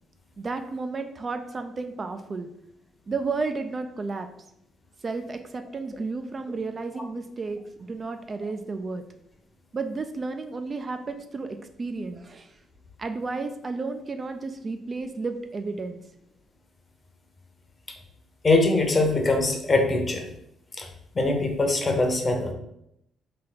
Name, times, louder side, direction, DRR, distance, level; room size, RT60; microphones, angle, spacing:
voice 1, 0.4-2.5 3.1-4.3 5.0-9.0 9.7-12.6 13.0-16.0, right 3 dB, 35° right, 7 dB, 0.3 m, -32 dB
voice 2, 18.4-20.2 20.8-20.9 21.1-22.5, left 2 dB, 30° left, 3 dB, 0.8 m, -22 dB
3.3 x 3.3 x 3.9 m, 0.78 s
cardioid pair, 90°, 0 cm